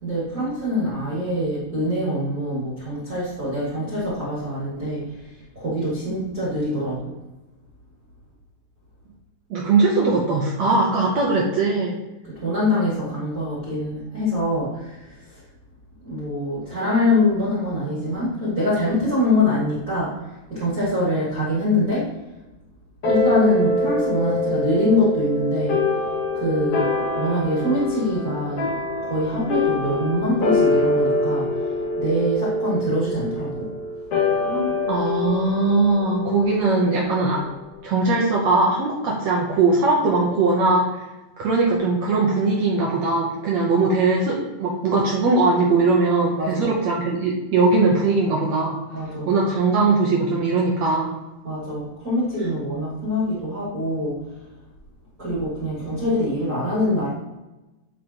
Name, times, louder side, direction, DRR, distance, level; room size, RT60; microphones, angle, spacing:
voice 1, 0.0-7.1 12.3-15.4 16.0-20.1 20.5-22.0 23.0-25.8 26.3-26.9 27.1-28.7 29.0-31.5 32.0-33.7 46.4-46.7 48.9-49.3 51.4-54.1 55.2-57.1, left 1 dB, 30° right, -9 dB, 2.1 m, -24 dB
voice 2, 9.5-11.9 34.5-37.4 37.8-41.0 41.4-48.8 49.3-51.1, right 3 dB, 80° right, -2 dB, 1.6 m, -20 dB
sound 1, 23.0-37.8, left 2 dB, 50° left, 2.0 m, -25 dB
9.9 x 5.2 x 2.9 m, 1.1 s
omnidirectional pair, 4.4 m